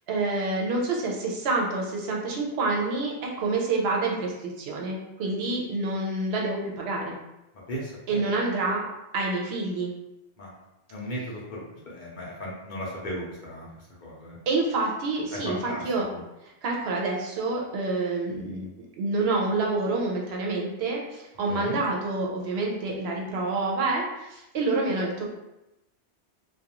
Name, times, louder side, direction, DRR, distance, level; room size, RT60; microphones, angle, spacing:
voice 1, 0.1-7.1 8.1-8.8 9.1-9.9 14.5-16.1 16.4-25.3, right 3 dB, 70° right, -1 dB, 0.8 m, -28 dB
voice 2, 7.7-8.2 10.4-10.5 10.9-14.4 15.3-15.8 16.1-16.2 21.5-21.8, equal, 55° left, -5 dB, 0.7 m, -36 dB
2.4 x 2.3 x 2.8 m, 0.93 s
omnidirectional pair, 1.1 m